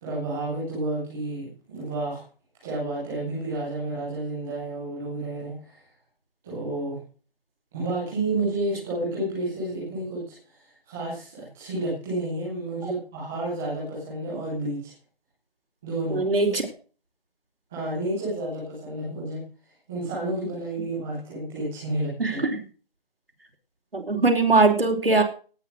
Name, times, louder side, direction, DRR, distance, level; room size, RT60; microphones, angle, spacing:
voice 1, 0.0-2.2 2.6-5.8 6.4-7.0 7.7-10.3 10.9-14.9 15.8-16.3 17.7-19.4 19.9-22.2, right 2 dB, ahead, -9 dB, 0.7 m, -30 dB
voice 2, 16.1-16.7 22.2-22.6 23.9-25.2, right 3 dB, 75° right, 4 dB, 4.6 m, -21 dB
18.0 x 6.8 x 6.3 m, 0.39 s
figure-of-eight pair, 160°, 29 cm